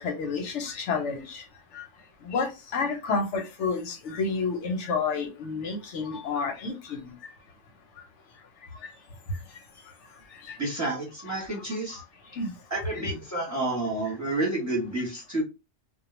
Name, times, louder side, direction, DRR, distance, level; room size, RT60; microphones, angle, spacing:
voice 1, 0.0-1.4 1.7-1.8 2.2-7.1 10.5-10.6 11.3-11.4 12.4-12.5 12.9-13.1 13.3-13.4, left 4 dB, 80° left, 1.0 m, -30 dB
voice 2, 10.6-12.0 12.7-15.4, right 2 dB, 15° right, 1.0 m, -30 dB
2.3 x 2.1 x 3.0 m
omnidirectional pair, 1.2 m